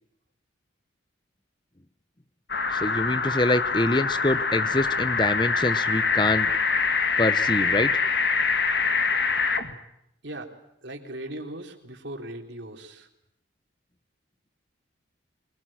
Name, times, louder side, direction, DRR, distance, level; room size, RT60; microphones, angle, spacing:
sound 1, 2.5-9.7, left 5 dB, 55° left, 2.1 m, -24 dB
voice 1, 2.7-6.5 7.2-7.9, left 2 dB, 25° left, 14 dB, 0.9 m, -25 dB
voice 2, 10.8-13.1, right 1 dB, 65° right, 3 dB, 3.8 m, -38 dB
24.5 x 22.0 x 9.0 m, 0.79 s
head